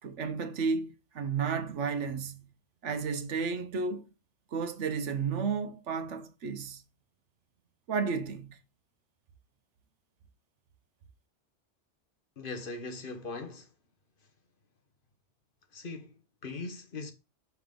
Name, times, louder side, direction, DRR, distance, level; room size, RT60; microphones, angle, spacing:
voice 1, 0.0-2.4 2.8-4.0 4.5-6.8 7.9-8.6, right 5 dB, 80° right, 1.2 m, -32 dB
voice 2, 12.4-13.7 15.7-17.1, left 3 dB, 50° left, 1.2 m, -40 dB
6.0 x 5.3 x 3.7 m
omnidirectional pair, 1.2 m